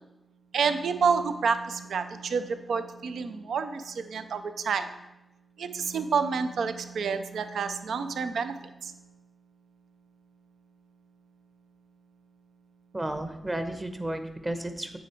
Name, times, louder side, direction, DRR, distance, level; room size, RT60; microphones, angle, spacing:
voice 1, 0.5-4.9 5.6-9.0, right 5 dB, 80° right, 10 dB, 0.4 m, -29 dB
voice 2, 12.9-15.0, right 1 dB, 30° right, 8 dB, 1.0 m, -33 dB
8.2 x 5.1 x 4.4 m, 0.94 s
cardioid pair, 50°, 0 cm